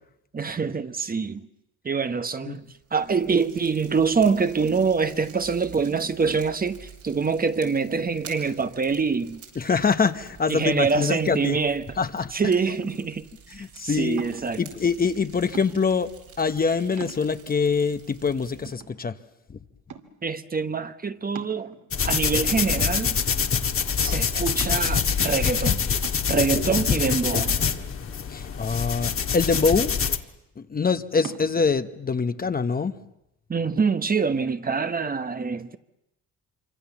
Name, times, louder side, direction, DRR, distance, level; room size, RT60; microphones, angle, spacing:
voice 1, 0.3-1.5 1.8-2.6 2.9-9.4 10.5-12.0 12.3-13.3 13.6-14.6 20.2-21.7 22.0-23.2 24.0-25.8 26.3-27.6 33.5-35.8, right 5 dB, 30° right, 1.1 m, -25 dB
Fire, 2.5-18.7, right 7 dB, 85° right, 7.4 m, -49 dB
voice 2, 9.6-11.6 12.0-12.3 13.5-14.2 14.6-16.1 16.4-19.2 28.3-29.9 30.6-32.9, left 5 dB, 30° left, 1.0 m, -24 dB
sound 1, 12.8-13.3 14.2-14.6 15.5-16.0 16.6-16.7 17.0-17.6 18.2-18.3 18.7-19.4 19.9-20.3 21.4-22.1 22.8-23.4 23.8-23.9 24.5-24.9 26.0-26.5 27.5-28.4 29.5-30.1 31.2-31.5, right 7 dB, 70° right, 2.4 m, -42 dB
sound 2, 21.9-30.2, left 6 dB, 45° left, 1.6 m, -25 dB
26.0 x 25.5 x 7.2 m
cardioid pair, 90°, 30 cm